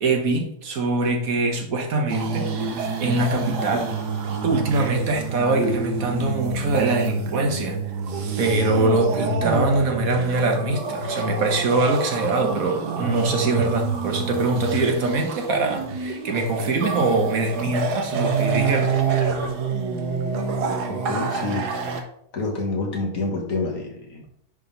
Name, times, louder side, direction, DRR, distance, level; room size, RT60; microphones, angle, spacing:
voice 1, 0.0-2.5 3.0-3.9 4.4-7.8 8.4-19.0, right 2 dB, 60° right, 4 dB, 1.4 m, -23 dB
sound 1, 2.1-22.0, right 5 dB, 90° right, 1.5 m, -27 dB
voice 2, 20.9-21.7 22.3-24.3, left 3 dB, 60° left, 0 dB, 1.9 m, -28 dB
10.0 x 3.7 x 3.9 m, 0.70 s
omnidirectional pair, 1.7 m